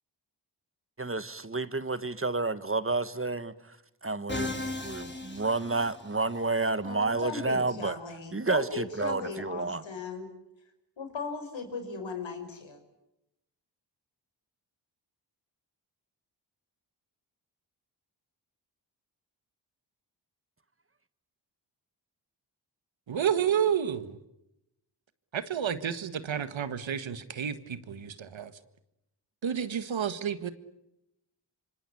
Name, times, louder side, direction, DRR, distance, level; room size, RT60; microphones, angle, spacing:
voice 1, 1.0-3.8 4.0-8.0 8.3-9.8, right 3 dB, 30° right, 14 dB, 1.6 m, -30 dB
Musical instrument, 4.3-6.4, left 2 dB, 25° left, 4.2 m, -36 dB
voice 2, 6.8-10.3 11.0-12.8, left 4 dB, 80° left, 7 dB, 5.5 m, -37 dB
voice 3, 23.1-24.2 25.3-28.5 29.4-30.5, right 8 dB, 90° right, 12 dB, 1.7 m, -30 dB
26.5 x 25.5 x 8.6 m, 0.86 s
cardioid pair, 55°, 45 cm